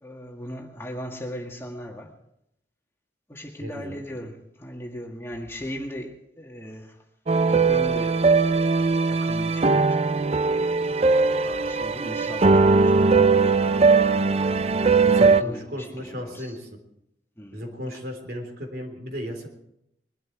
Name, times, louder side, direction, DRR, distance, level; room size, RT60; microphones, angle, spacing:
voice 1, 0.0-2.1 3.3-7.0 7.5-8.2 8.6-8.7 9.1-10.0 11.4-14.1 15.2-16.5 17.4-17.6, equal, 15° left, 1 dB, 1.8 m, -38 dB
voice 2, 3.6-4.0 15.0-16.7 17.5-19.5, equal, 60° right, 3 dB, 3.7 m, -35 dB
sound 1, 7.3-15.4, right 4 dB, 35° right, 0.5 m, -20 dB
21.5 x 12.5 x 4.7 m, 0.79 s
head